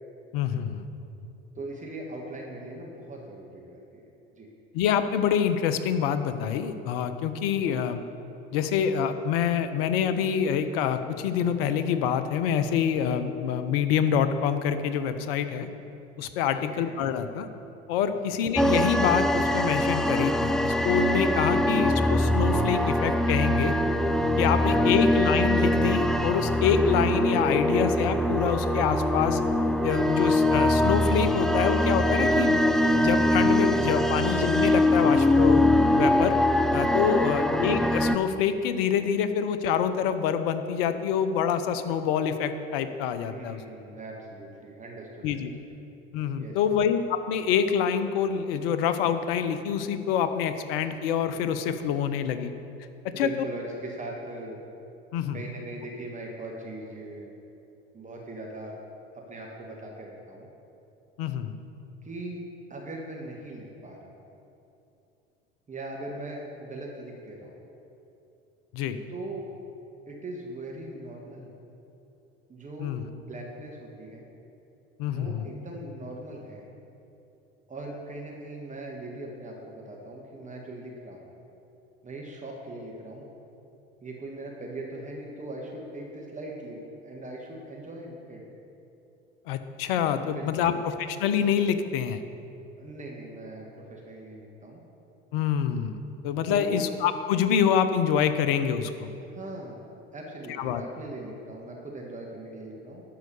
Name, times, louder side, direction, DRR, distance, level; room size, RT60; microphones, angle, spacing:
voice 1, 0.3-0.9 4.7-8.0 8.5-15.7 16.2-17.5 17.9-23.7 24.4-29.4 29.8-32.7 33.0-35.6 36.0-36.3 36.7-43.6 45.2-45.5 46.1-52.5 53.2-53.3 55.1-55.4 61.2-61.6 68.7-69.0 72.8-73.0 75.0-75.4 89.5-90.7 91.2-92.2 95.3-96.0 96.2-99.1 100.6-100.8, left 8 dB, 65° left, 10 dB, 0.7 m, -26 dB
voice 2, 1.5-4.0 4.4-4.5 16.5-16.9 18.1-18.3 24.4-25.0 34.1-34.3 37.2-37.5 43.3-45.5 46.4-46.5 53.1-54.6 55.3-57.3 57.9-58.8 59.1-60.5 62.0-62.4 62.7-64.3 65.7-67.6 69.1-69.4 70.1-71.5 72.5-74.2 75.1-76.7 77.7-81.3 82.0-83.2 84.0-88.4 90.3-90.8 92.8-94.8 96.5-96.8 99.3-99.8 100.1-103.0, right 2 dB, 25° right, -1 dB, 1.6 m, -40 dB
sound 1, 18.6-38.2, left 1 dB, ahead, 0.3 m, -23 dB
12.0 x 4.7 x 6.8 m, 2.8 s
hypercardioid pair, 70°, 32 cm